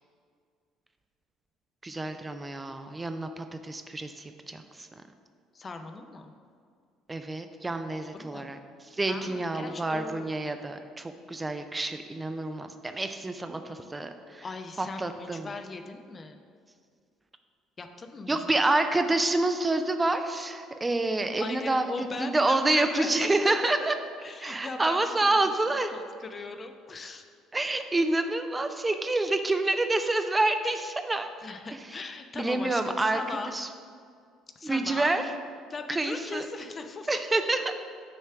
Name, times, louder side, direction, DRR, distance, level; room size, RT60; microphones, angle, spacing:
voice 1, 1.8-4.9 7.1-8.6 8.9-14.4 14.8-15.5 18.3-21.9 22.2-23.9 24.4-25.9 27.5-31.3 32.4-33.2 33.5-33.7 34.6-35.2 35.9-36.5 37.1-37.7, right 2 dB, 20° right, 8 dB, 0.4 m, -28 dB
voice 2, 5.5-6.3 8.1-8.5 9.1-10.3 14.4-16.4 17.8-18.5 21.4-23.5 24.2-25.4 25.9-27.2 31.4-33.6 34.6-35.2 35.7-37.2, left 3 dB, 35° left, 6 dB, 0.5 m, -39 dB
6.8 x 3.1 x 5.9 m, 2.2 s
figure-of-eight pair, 55°, 0 cm